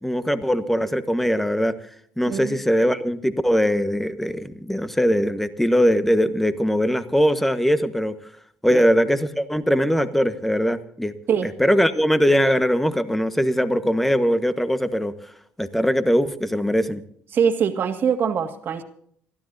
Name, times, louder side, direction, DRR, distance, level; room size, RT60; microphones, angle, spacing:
voice 1, 0.0-1.7 2.2-8.2 8.6-11.1 11.4-15.1 15.6-17.0, equal, 5° left, 10 dB, 1.3 m, -21 dB
voice 2, 17.3-18.8, right 7 dB, 55° right, 7 dB, 1.9 m, -23 dB
28.5 x 13.0 x 2.7 m, 0.63 s
cardioid pair, 95°, 4 cm